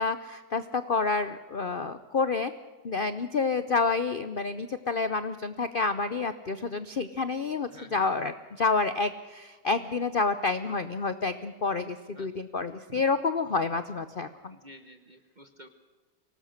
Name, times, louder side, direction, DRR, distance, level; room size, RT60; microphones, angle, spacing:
voice 1, 0.0-2.5 2.8-14.5, left 4 dB, 80° left, 12 dB, 0.4 m, -29 dB
voice 2, 7.7-8.1 12.1-12.3 12.9-13.0 14.5-15.7, right 1 dB, 30° right, 6 dB, 1.0 m, -50 dB
24.5 x 19.0 x 6.5 m, 1.3 s
omnidirectional pair, 2.0 m